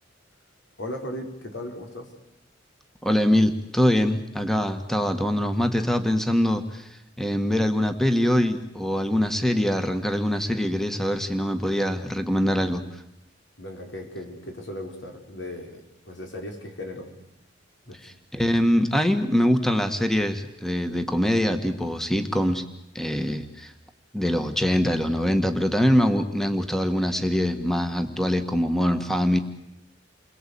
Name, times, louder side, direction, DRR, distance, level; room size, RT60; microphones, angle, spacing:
voice 1, 0.8-2.1 13.6-17.1 17.9-18.0, left 1 dB, 85° left, 3 dB, 5.5 m, -37 dB
voice 2, 3.0-13.0 18.0-22.6 22.9-23.7 24.1-29.4, equal, ahead, 8 dB, 1.5 m, -23 dB
29.5 x 22.0 x 8.6 m, 0.87 s
head